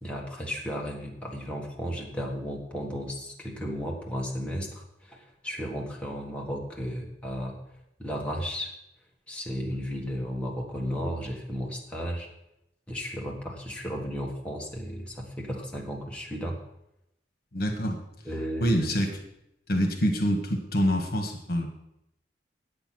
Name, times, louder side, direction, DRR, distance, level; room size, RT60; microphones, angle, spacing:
voice 1, 0.0-7.5 8.0-8.7 9.3-12.3 12.9-16.6 18.2-18.8, equal, 5° left, -2 dB, 1.6 m, -34 dB
voice 2, 17.5-18.0 18.6-19.2 19.7-21.7, equal, 60° left, 4 dB, 1.5 m, -26 dB
9.4 x 8.1 x 6.0 m, 0.82 s
head